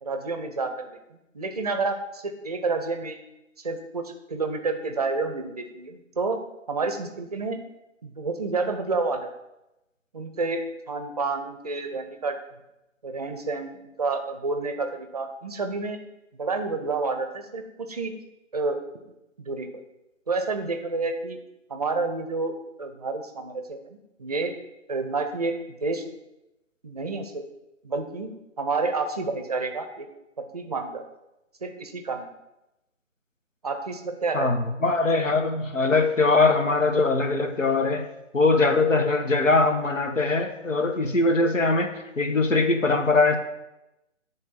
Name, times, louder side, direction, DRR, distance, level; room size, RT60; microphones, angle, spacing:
voice 1, 0.0-3.2 3.6-6.4 6.7-7.6 8.0-9.3 10.1-10.6 10.9-12.4 13.0-16.0 16.4-18.1 18.5-18.8 19.4-19.7 20.3-21.4 21.7-24.5 24.9-26.0 26.8-27.4 27.8-30.1 30.4-31.0 31.6-32.3 33.6-34.5, right 3 dB, 30° right, 6 dB, 0.6 m, -29 dB
voice 2, 34.3-38.1 38.3-43.4, left 3 dB, 80° left, 5 dB, 1.2 m, -22 dB
10.0 x 3.6 x 4.2 m, 0.92 s
figure-of-eight pair, 145°, 38 cm